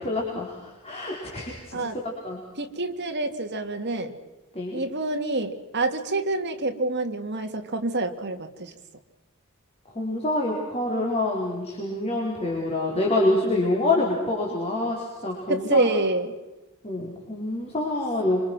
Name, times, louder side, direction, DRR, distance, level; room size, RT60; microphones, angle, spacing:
voice 1, 0.0-2.4 4.5-4.8 9.9-15.9 16.8-18.4, left 2 dB, 30° left, -3 dB, 4.6 m, -26 dB
voice 2, 2.6-4.1 4.7-8.7 15.5-16.3, right 2 dB, 50° right, 6 dB, 2.2 m, -27 dB
28.0 x 25.0 x 6.1 m, 1.1 s
head